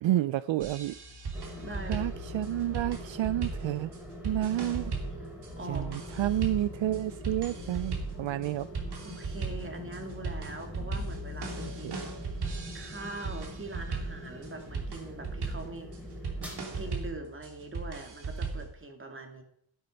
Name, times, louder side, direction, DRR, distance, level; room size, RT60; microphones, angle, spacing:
voice 1, 0.0-1.0 1.9-3.9 4.2-4.9 5.6-8.7 11.8-12.0, right 13 dB, 70° right, 16 dB, 0.5 m, -30 dB
sound 1, 0.6-18.7, right 4 dB, 50° right, 3.0 m, -37 dB
sound 2, 0.8-12.8, left 6 dB, 40° left, 2.8 m, -48 dB
sound 3, 1.3-17.0, equal, 5° right, 4.0 m, -44 dB
voice 2, 1.6-2.1 5.6-6.2 9.0-12.1 12.7-15.9 16.8-19.4, right 2 dB, 25° right, 5 dB, 2.3 m, -42 dB
13.5 x 11.0 x 5.2 m, 0.66 s
wide cardioid pair, 165°, 49 cm